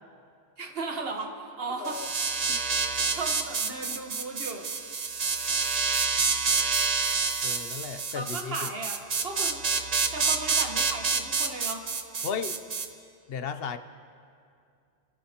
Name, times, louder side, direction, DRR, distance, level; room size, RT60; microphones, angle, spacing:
voice 1, 0.6-2.0 3.1-4.7 8.1-9.6 10.1-11.9, right 3 dB, 65° right, 3 dB, 1.5 m, -36 dB
voice 2, 1.7-2.1 2.5-2.6 7.4-8.7 12.2-12.6 13.3-13.8, left 6 dB, 70° left, 9 dB, 0.9 m, -35 dB
sound 1, 1.8-12.9, right 5 dB, 45° right, 0.7 m, -28 dB
26.0 x 14.0 x 2.9 m, 2.4 s
omnidirectional pair, 1.1 m